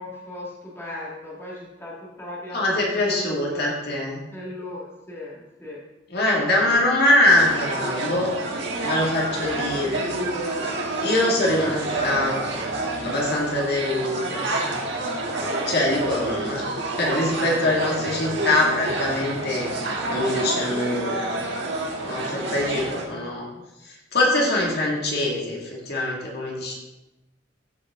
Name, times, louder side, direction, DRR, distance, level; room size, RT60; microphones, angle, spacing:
voice 1, 0.0-3.7 4.3-5.8 6.7-6.8 7.2-7.3 10.0-10.3 11.7-11.8 12.1-12.2 22.9-23.6, left 1 dB, 15° left, -6 dB, 1.9 m, -38 dB
voice 2, 2.5-4.3 6.1-8.3 8.8-10.0 11.0-12.7 13.0-14.8 15.7-21.3 22.0-23.5 23.8-26.7, left 1 dB, 55° left, -2 dB, 2.0 m, -23 dB
sound 1, 7.2-23.0, right 2 dB, 65° right, 1.6 m, -28 dB
13.5 x 5.4 x 3.6 m, 0.98 s
head